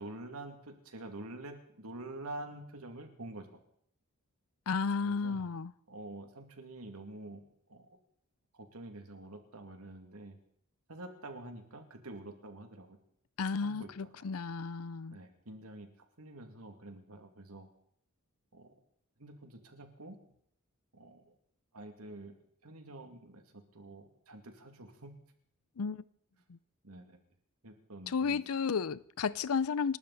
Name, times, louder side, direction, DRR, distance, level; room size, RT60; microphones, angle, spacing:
voice 1, 0.0-3.5 5.0-5.5 5.9-7.4 7.7-8.0 8.5-10.4 10.9-13.0 13.6-14.3 15.1-15.9 16.2-17.7 18.5-18.8 19.2-20.1 20.9-21.3 21.7-22.3 22.6-25.1 26.8-27.2 27.6-28.4, right 2 dB, 90° right, 2.5 m, -47 dB
voice 2, 4.7-5.7 13.4-15.2 25.8-26.0 26.5-26.6 28.1-30.0, left 5 dB, 75° left, 0.6 m, -33 dB
28.0 x 12.5 x 4.2 m
head